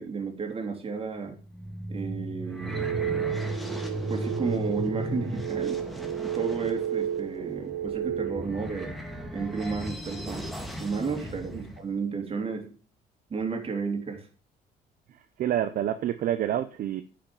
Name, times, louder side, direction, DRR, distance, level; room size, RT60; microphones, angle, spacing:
voice 1, 0.0-1.4 1.9-2.9 4.1-5.8 6.2-9.1 9.3-10.5 10.8-12.7 13.3-14.3, right 5 dB, 35° right, 3.1 m, -32 dB
sound 1, 1.3-11.8, equal, ahead, 2.1 m, -36 dB
sound 2, 2.7-8.5, right 10 dB, 80° right, 1.4 m, -32 dB
voice 2, 15.4-17.0, right 11 dB, 55° right, 0.7 m, -28 dB
10.0 x 5.9 x 7.0 m
cardioid pair, 110°, 17 cm